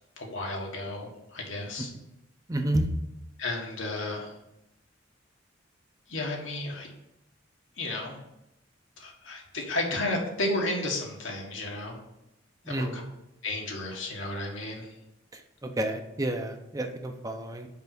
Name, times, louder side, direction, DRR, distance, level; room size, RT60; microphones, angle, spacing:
voice 1, 0.2-1.9 3.4-4.3 6.1-6.9 7.8-8.2 9.0-12.0 12.7-13.0 13.4-14.9, left 2 dB, 80° left, 0 dB, 1.6 m, -33 dB
voice 2, 2.5-2.9 12.6-13.0 15.3-17.7, right 1 dB, 20° right, 5 dB, 0.6 m, -30 dB
5.6 x 5.1 x 6.1 m, 0.89 s
head